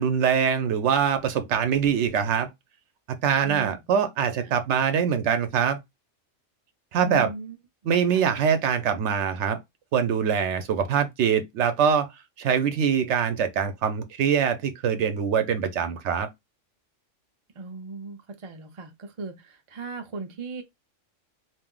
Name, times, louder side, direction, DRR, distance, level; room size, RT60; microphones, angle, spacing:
voice 1, 0.0-2.5 3.2-5.8 6.9-7.3 7.9-9.6 9.9-12.1 12.4-16.3, right 7 dB, 70° right, 0.8 m, -23 dB
voice 2, 3.4-3.8 4.4-4.6 6.9-7.6 8.1-8.3 17.5-20.6, right 3 dB, 45° right, 0.4 m, -38 dB
2.5 x 2.0 x 3.7 m
omnidirectional pair, 1.3 m